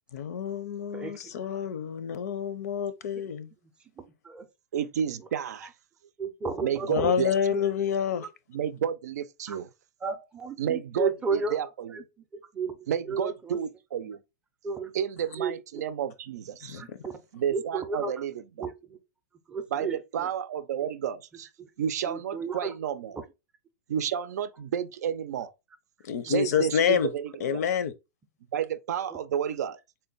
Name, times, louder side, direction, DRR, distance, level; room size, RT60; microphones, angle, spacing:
voice 1, 0.1-3.5 6.9-8.3 16.6-17.0 26.0-27.1 27.4-27.9, left 8 dB, 70° left, 0.6 m, -28 dB
voice 2, 0.9-1.6 4.0-4.5 6.2-7.1 8.2-8.3 9.5-9.6 10.0-11.6 11.9-12.0 12.3-13.6 14.6-14.9 15.4-15.8 16.8-17.2 17.5-18.1 18.6-19.0 19.5-20.3 21.6-21.7 22.1-22.7 23.1-23.2 26.3-26.4 29.1-29.2, right 4 dB, 10° right, 0.5 m, -33 dB
voice 3, 4.7-5.7 6.6-7.6 8.5-9.7 10.6-12.0 12.9-14.2 14.9-16.8 17.3-18.7 19.7-21.5 21.8-23.2 23.9-25.5 26.2-27.7 28.5-29.8, right 9 dB, 75° right, 0.5 m, -31 dB
3.8 x 2.2 x 3.8 m
supercardioid pair, 155°, 9 cm